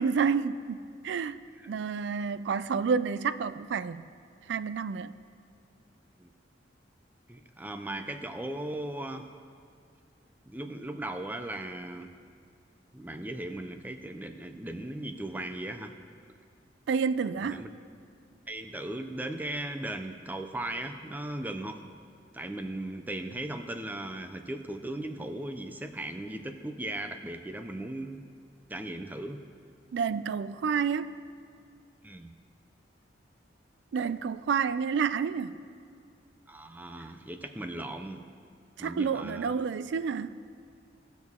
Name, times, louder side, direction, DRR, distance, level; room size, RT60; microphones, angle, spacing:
voice 1, 0.0-1.4 1.7-4.0 4.5-5.1 16.9-17.6 29.9-31.1 33.9-35.6 38.8-40.4, right 6 dB, 75° right, 0.3 m, -29 dB
voice 2, 7.3-9.3 10.5-12.1 12.9-15.9 17.4-17.7 18.5-21.8 22.3-28.3 28.7-29.4 32.0-32.3 36.5-38.2 38.8-39.5, right 1 dB, 10° right, 0.4 m, -37 dB
17.5 x 6.2 x 3.6 m
head